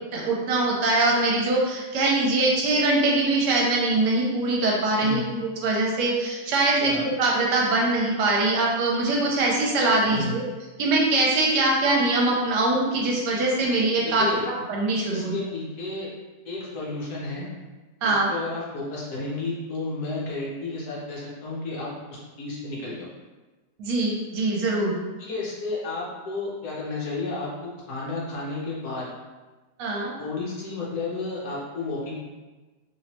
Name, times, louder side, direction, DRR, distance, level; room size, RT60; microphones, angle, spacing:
voice 1, 0.1-10.4 10.8-15.3 18.0-18.3 23.8-25.0 29.8-30.1, right 2 dB, 75° right, -2 dB, 1.2 m, -23 dB
voice 2, 10.0-10.4 14.0-14.5 15.1-16.1 16.4-17.5 18.0-23.1 25.2-27.5 27.9-29.1 30.2-32.1, left 3 dB, 65° left, -5 dB, 1.2 m, -32 dB
3.0 x 3.0 x 2.9 m, 1.2 s
omnidirectional pair, 1.9 m